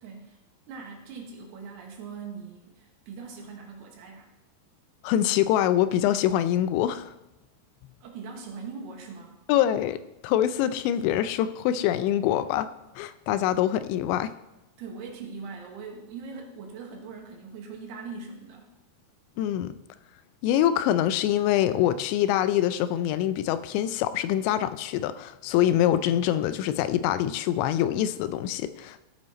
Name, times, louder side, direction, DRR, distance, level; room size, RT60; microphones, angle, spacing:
voice 1, 0.0-0.4 0.7-4.3 8.0-9.4 14.8-18.7, right 5 dB, 70° right, 1 dB, 3.1 m, -41 dB
voice 2, 5.0-7.1 9.5-10.0 10.2-12.7 13.0-14.3 19.4-19.7 20.4-29.0, left 11 dB, 90° left, 13 dB, 2.9 m, -24 dB
14.5 x 5.5 x 4.2 m, 0.96 s
omnidirectional pair, 5.1 m